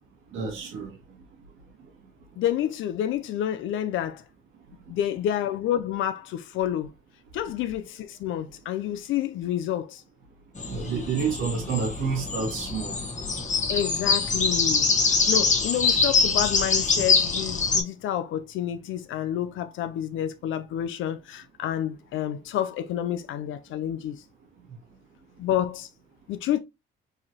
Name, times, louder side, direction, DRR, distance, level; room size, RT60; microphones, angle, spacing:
voice 1, 0.3-0.9 10.7-13.0, right 5 dB, 90° right, 1.9 m, -29 dB
voice 2, 2.4-4.2 4.9-6.9 7.3-10.0 13.7-24.2 25.4-25.9 26.3-26.6, left 11 dB, 80° left, 0.5 m, -29 dB
sound 1, 10.6-17.8, left 4 dB, 40° left, 1.4 m, -24 dB
4.7 x 3.0 x 2.9 m
cardioid pair, 90°, 20 cm